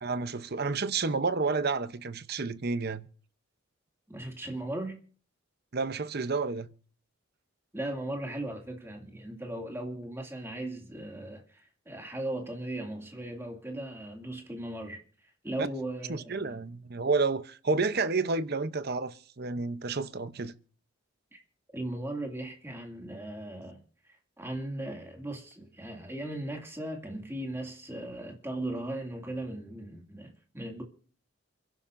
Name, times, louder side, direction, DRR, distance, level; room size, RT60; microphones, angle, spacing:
voice 1, 0.0-3.1 5.7-6.7 15.6-15.7 16.1-20.5, right 4 dB, 45° right, 0.7 m, -30 dB
voice 2, 4.1-5.0 7.7-15.0 15.4-16.6 21.3-21.4 21.7-23.8 24.4-30.8, right 1 dB, 10° right, 2.3 m, -37 dB
29.0 x 11.5 x 2.6 m
head